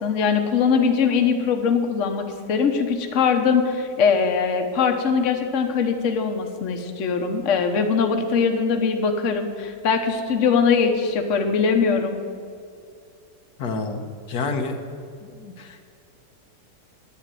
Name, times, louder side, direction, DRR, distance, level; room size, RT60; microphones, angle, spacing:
voice 1, 0.0-12.2, left 5 dB, 55° left, 5 dB, 1.3 m, -21 dB
voice 2, 13.6-14.8 15.2-15.8, left 4 dB, 80° left, 5 dB, 1.5 m, -29 dB
10.0 x 9.7 x 9.0 m, 2.4 s
omnidirectional pair, 1.7 m